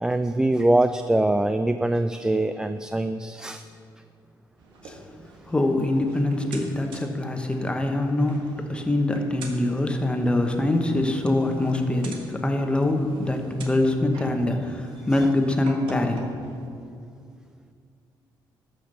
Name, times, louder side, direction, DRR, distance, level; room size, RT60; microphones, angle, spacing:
voice 1, 0.0-3.7, right 1 dB, 10° right, 10 dB, 0.3 m, -23 dB
sound 1, 4.6-16.7, right 3 dB, 85° right, 1.5 m, -47 dB
voice 2, 5.5-16.4, left 1 dB, 10° left, 4 dB, 1.1 m, -24 dB
13.0 x 5.8 x 6.6 m, 2.4 s
cardioid pair, 105°, 8 cm